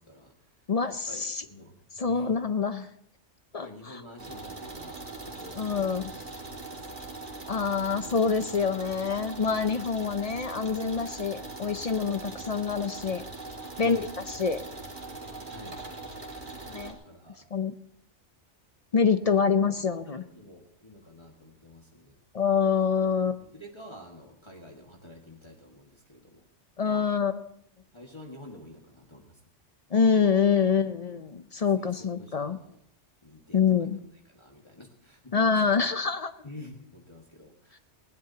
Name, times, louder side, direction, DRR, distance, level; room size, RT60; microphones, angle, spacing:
voice 1, 0.0-0.5 1.1-1.8 2.0-2.3 3.6-6.0 6.6-7.1 7.7-7.9 13.8-14.1 15.4-15.8 17.0-17.5 19.0-19.4 19.7-19.8 20.1-22.2 23.4-26.4 26.8-27.2 27.9-29.4 31.8-32.8 33.2-34.0 34.3-35.7 36.4-37.8, left 1 dB, 25° left, -1 dB, 1.8 m, -49 dB
voice 2, 0.7-1.4 2.0-2.9 3.5-4.0 5.6-6.0 7.5-13.2 13.8-14.6 16.7-17.0 17.5-17.7 18.9-20.2 22.3-23.4 26.8-27.5 29.9-32.6 33.5-34.0 35.3-36.3, left 6 dB, 45° left, 11 dB, 0.6 m, -26 dB
sound 1, 4.2-16.9, right 3 dB, 45° right, 2.2 m, -41 dB
20.5 x 17.0 x 2.8 m, 0.72 s
omnidirectional pair, 1.2 m